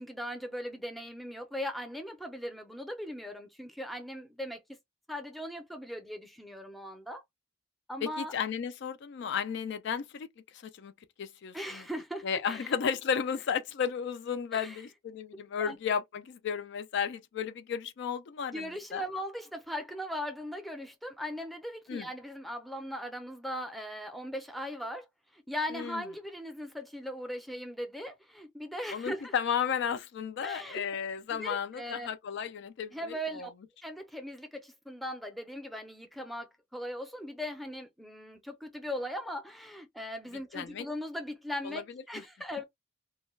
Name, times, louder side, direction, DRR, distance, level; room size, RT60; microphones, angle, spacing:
voice 1, 0.0-4.6 5.1-7.2 7.9-8.3 11.5-12.7 14.5-14.8 15.6-15.8 18.5-25.1 25.3-29.3 30.4-30.8 31.3-32.1 32.9-33.5 33.8-42.6, equal, ahead, 0.5 m, -39 dB
voice 2, 8.0-10.9 11.2-11.8 12.2-19.0 21.9-22.1 25.7-26.0 28.9-33.5 40.5-40.9 41.6-41.8 42.1-42.2, left 7 dB, 60° left, 0.3 m, -34 dB
2.2 x 2.2 x 3.0 m
head